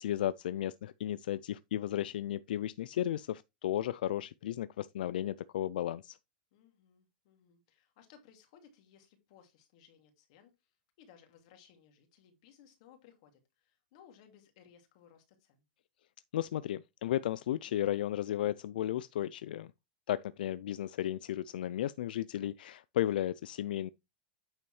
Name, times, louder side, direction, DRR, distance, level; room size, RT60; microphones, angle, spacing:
voice 1, 0.0-6.2 16.3-19.7 20.1-23.9, left 12 dB, 75° left, 0.4 m, -34 dB
voice 2, 6.5-15.6, left 8 dB, 45° left, 2.5 m, -61 dB
8.9 x 6.8 x 3.2 m
supercardioid pair, 175°, 5 cm